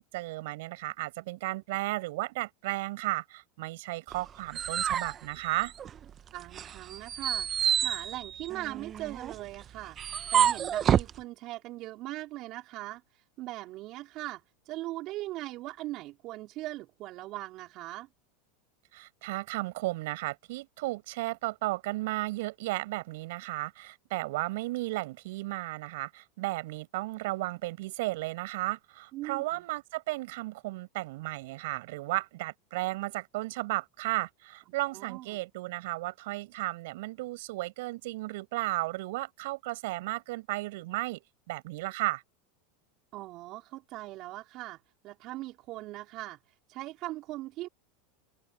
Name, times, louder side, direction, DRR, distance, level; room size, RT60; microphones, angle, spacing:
voice 1, 0.0-5.7 18.9-42.2, right 20 dB, 70° right, 7.0 m, -34 dB
sound 1, 4.1-6.1 6.5-11.2, right 9 dB, 35° right, 1.0 m, -29 dB
voice 2, 6.3-7.5 7.8-10.0 10.3-13.0 13.4-18.1 29.1-29.6 34.9-35.4 43.1-44.8 45.0-46.4 46.7-47.7, right 17 dB, 50° right, 4.4 m, -40 dB
open air
hypercardioid pair, 100°, 0 cm